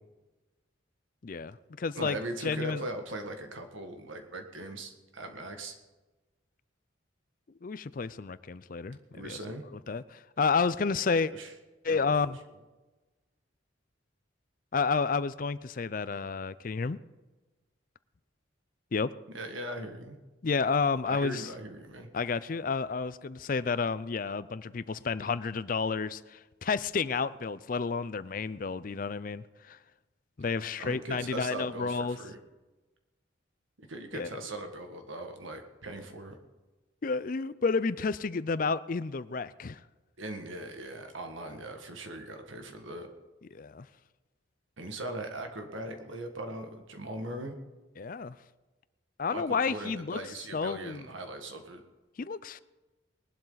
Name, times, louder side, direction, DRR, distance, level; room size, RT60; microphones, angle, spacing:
voice 1, 1.2-2.2 2.4-2.8 7.6-9.4 9.7-11.3 11.8-12.4 14.7-17.0 18.9-19.1 20.4-21.5 22.1-29.8 30.4-32.2 34.1-34.3 37.0-39.8 43.5-43.9 48.0-48.4 49.2-50.2 50.5-51.1 52.2-52.6, left 4 dB, 45° left, 17 dB, 0.4 m, -31 dB
voice 2, 2.0-5.7 9.1-9.6 11.3-11.5 11.9-12.3 19.3-20.2 21.1-22.1 30.8-32.4 33.8-36.4 40.2-43.1 44.8-47.5 49.3-51.8, right 1 dB, 85° right, 5 dB, 1.8 m, -40 dB
20.0 x 12.0 x 4.0 m, 1.2 s
head